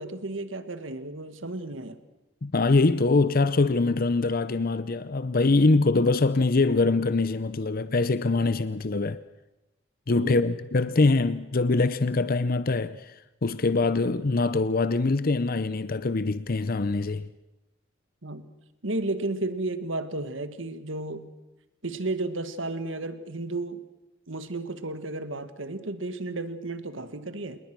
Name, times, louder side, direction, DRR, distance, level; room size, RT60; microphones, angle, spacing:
voice 1, 0.0-2.0 10.1-10.5 18.2-18.5 18.8-21.3 21.8-23.9 24.3-27.6, right 2 dB, 75° right, 1.8 m, -33 dB
voice 2, 2.4-9.2 10.1-17.3, left 3 dB, 50° left, 0.7 m, -23 dB
28.0 x 20.5 x 6.2 m
head